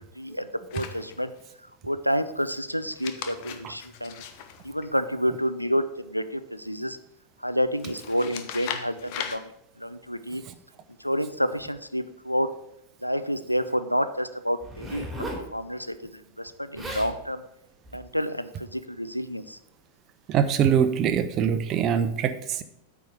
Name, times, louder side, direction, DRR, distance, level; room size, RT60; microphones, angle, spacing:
voice 1, 0.0-1.3 1.8-4.2 4.6-7.0 7.4-10.4 11.0-12.5 13.0-17.4 17.9-19.6, equal, 90° left, 12 dB, 0.5 m, -29 dB
sound 1, 0.7-1.5 2.8-5.4 7.8-9.4, left 8 dB, 45° left, 0.9 m, -38 dB
Zipper (clothing), 14.6-15.5 16.5-16.6 16.8-17.1 17.8-18.1, right 1 dB, 5° right, 2.8 m, -35 dB
voice 2, 20.3-22.6, right 8 dB, 35° right, 9 dB, 0.7 m, -23 dB
8.9 x 4.9 x 6.8 m, 0.79 s
figure-of-eight pair, 90°, 0 cm